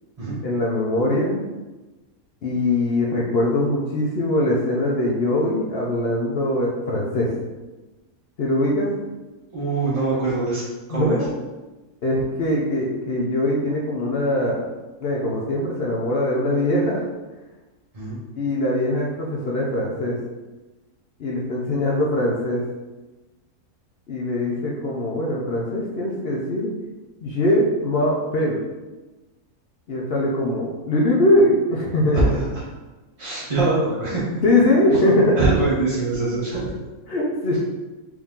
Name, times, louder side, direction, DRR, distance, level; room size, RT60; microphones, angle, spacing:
voice 1, 0.4-1.4 2.4-7.3 8.4-8.9 10.9-11.3 12.0-14.6 15.0-17.0 18.3-20.2 21.2-22.6 24.1-26.7 27.2-28.7 29.9-32.3 34.4-35.5 37.1-37.6, left 1 dB, 55° left, -3 dB, 0.7 m, -22 dB
voice 2, 9.5-11.2 17.9-18.2 32.1-32.6 33.2-34.2 35.3-36.7, right 3 dB, 30° right, -9 dB, 0.7 m, -23 dB
4.7 x 2.7 x 3.6 m, 1.2 s
omnidirectional pair, 1.6 m